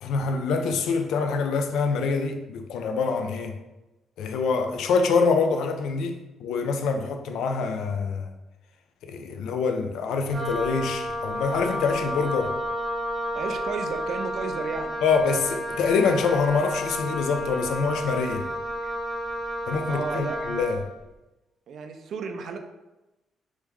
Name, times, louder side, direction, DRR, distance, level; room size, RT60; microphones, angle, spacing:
voice 1, 0.0-3.6 4.2-8.3 9.0-12.6 15.0-18.5 19.7-20.8, left 5 dB, 80° left, 6 dB, 0.3 m, -25 dB
Wind instrument woodwind instrument, 10.3-20.9, equal, 20° right, 0.8 m, -31 dB
voice 2, 13.3-14.9 18.8-18.9 19.9-20.4 21.7-22.6, right 5 dB, 50° right, 6 dB, 0.3 m, -33 dB
3.0 x 2.3 x 3.5 m, 1.0 s
cardioid pair, 170°, 0 cm